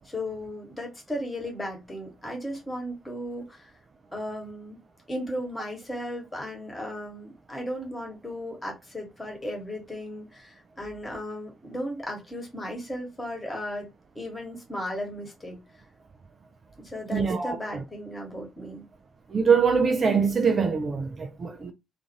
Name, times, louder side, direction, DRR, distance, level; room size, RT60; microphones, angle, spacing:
voice 1, 0.0-3.6 4.1-4.8 5.1-13.9 14.1-15.6 16.8-18.8, equal, 20° left, 1.3 m, -35 dB
voice 2, 17.1-17.8 19.3-21.7, right 5 dB, 40° right, 0.4 m, -23 dB
2.4 x 2.4 x 2.8 m
figure-of-eight pair, 40°, 0 cm